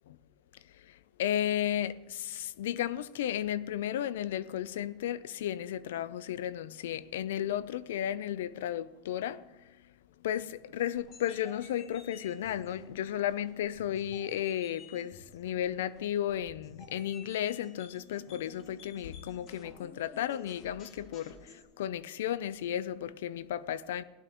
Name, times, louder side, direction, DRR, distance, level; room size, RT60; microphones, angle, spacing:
voice 1, 1.2-9.4 10.2-24.0, left 11 dB, 90° left, 0.5 m, -34 dB
sound 1, 10.9-21.6, left 3 dB, 40° left, 2.4 m, -53 dB
16.5 x 11.5 x 3.0 m
supercardioid pair, 130°, 0 cm